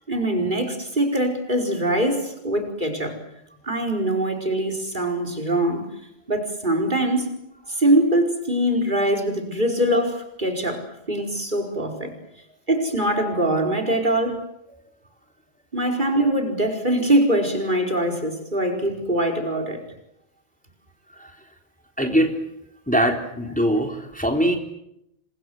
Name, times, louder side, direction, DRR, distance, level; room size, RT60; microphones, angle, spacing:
voice 1, 0.1-3.2 3.6-5.9 6.3-7.3 7.7-12.1 12.7-14.4 15.7-19.8, right 1 dB, 50° right, 6 dB, 5.0 m, -23 dB
voice 2, 22.0-22.3 22.9-24.6, equal, 5° left, 3 dB, 3.6 m, -22 dB
28.5 x 26.5 x 7.8 m, 0.80 s
omnidirectional pair, 1.1 m